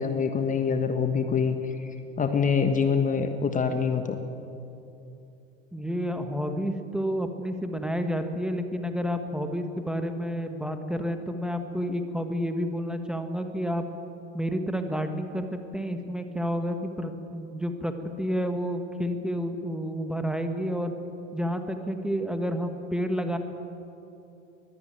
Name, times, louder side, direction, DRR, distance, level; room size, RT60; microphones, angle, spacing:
voice 1, 0.0-1.7 2.2-4.2, left 6 dB, 20° left, 7 dB, 1.5 m, -25 dB
voice 2, 5.7-13.8 14.3-17.9 18.2-20.9 21.3-23.4, equal, ahead, 6 dB, 1.6 m, -30 dB
22.0 x 15.0 x 9.2 m, 2.8 s
figure-of-eight pair, 85°, 37 cm